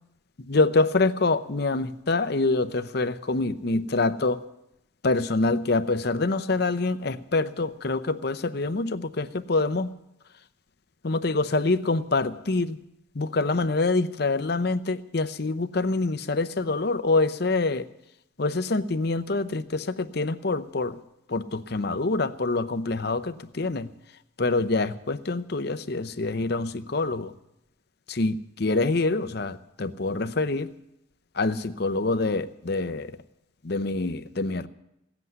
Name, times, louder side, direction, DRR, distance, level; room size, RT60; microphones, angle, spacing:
voice 1, 0.4-4.4 5.0-9.9 11.0-12.8 13.1-17.9 18.4-21.0 21.3-23.9 24.4-27.3 28.1-30.7 31.3-33.1 33.6-34.7, left 3 dB, 50° left, 11 dB, 0.7 m, -26 dB
17.0 x 8.0 x 9.5 m, 0.85 s
head